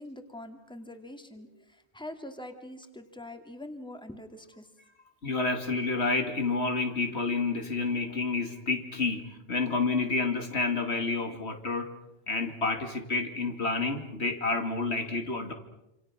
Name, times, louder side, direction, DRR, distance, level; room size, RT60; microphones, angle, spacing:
voice 1, 0.0-4.7, left 1 dB, 5° left, 6 dB, 2.2 m, -44 dB
voice 2, 5.2-9.2 9.5-11.9 12.3-15.5, left 3 dB, 80° left, 5 dB, 2.9 m, -29 dB
27.0 x 27.0 x 6.2 m, 0.87 s
omnidirectional pair, 1.1 m